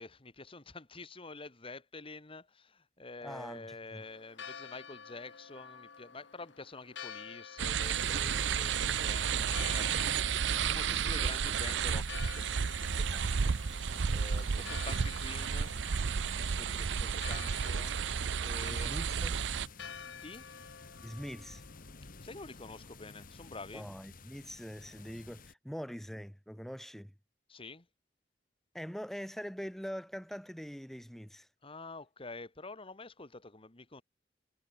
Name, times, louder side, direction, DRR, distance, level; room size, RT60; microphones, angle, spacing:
voice 1, 0.0-13.6 14.1-15.7 16.3-18.0 18.4-19.0 20.2-20.5 22.2-23.9 27.5-27.9 31.6-34.0, left 3 dB, 30° left, 1.6 m, -48 dB
voice 2, 3.2-4.0 14.5-14.7 18.7-19.4 21.0-21.6 23.7-27.1 28.7-31.5, equal, ahead, 1.3 m, -43 dB
Church bell, 4.0-23.4, left 6 dB, 80° left, 1.3 m, -50 dB
sound 1, 7.6-19.7, right 7 dB, 75° right, 0.5 m, -32 dB
sound 2, 7.8-25.5, left 3 dB, 50° left, 1.4 m, -52 dB
head